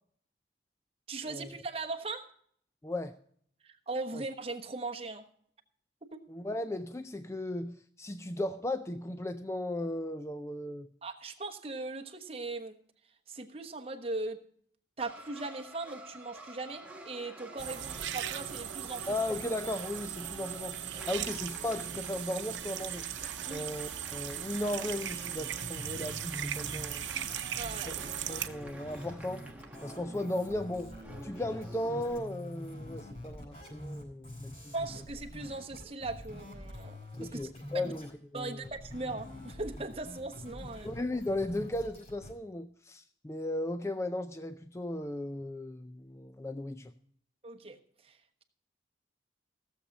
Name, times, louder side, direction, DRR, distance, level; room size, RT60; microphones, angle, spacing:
voice 1, 1.1-2.3 3.6-5.3 6.1-6.2 11.0-12.8 13.3-14.5 15.0-19.1 23.5-23.7 27.6-28.0 34.7-37.5 37.8-37.9 38.3-40.9 47.4-48.4, right 3 dB, 30° right, 1.2 m, -39 dB
voice 2, 2.8-3.2 4.1-4.2 6.3-10.9 19.1-27.1 27.9-28.0 28.3-29.5 29.8-31.0 31.2-34.7 37.2-38.7 40.8-46.9, left 1 dB, 15° left, 0.4 m, -36 dB
sound 1, 15.0-32.2, right 1 dB, 10° right, 1.2 m, -49 dB
sound 2, 17.6-28.5, right 10 dB, 85° right, 0.8 m, -38 dB
sound 3, 25.6-38.1 38.4-42.3, left 1 dB, 35° left, 5.3 m, -45 dB
16.0 x 7.3 x 5.3 m
head